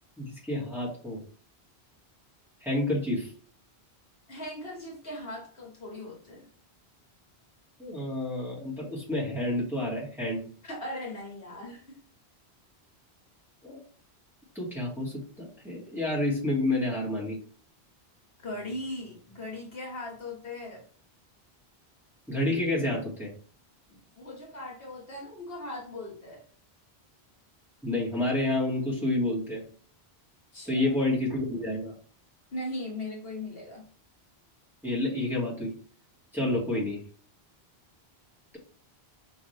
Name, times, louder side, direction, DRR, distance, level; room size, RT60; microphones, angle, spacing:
voice 1, 0.2-1.2 2.6-3.3 7.8-10.4 13.6-13.8 14.6-17.4 22.3-23.3 27.8-29.6 30.7-31.9 34.8-35.7 36.3-37.0, left 1 dB, ahead, -6 dB, 1.8 m, -29 dB
voice 2, 4.3-6.5 10.6-12.0 18.4-20.8 23.9-26.4 30.5-30.9 32.5-33.8 36.4-36.6, left 1 dB, 65° left, -1 dB, 1.6 m, -39 dB
4.8 x 3.0 x 3.3 m, 0.43 s
omnidirectional pair, 1.1 m